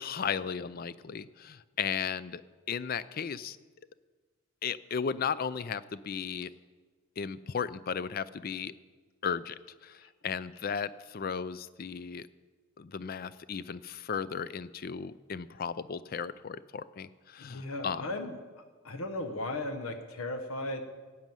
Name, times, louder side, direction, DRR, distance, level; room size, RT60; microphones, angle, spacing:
voice 1, 0.0-2.4 2.7-3.6 4.6-6.5 7.2-8.7 9.2-12.3 12.8-18.1, left 6 dB, 45° left, 16 dB, 0.4 m, -35 dB
voice 2, 17.4-18.3 18.8-20.8, left 2 dB, 90° left, 7 dB, 1.1 m, -36 dB
15.5 x 6.2 x 9.1 m, 1.4 s
head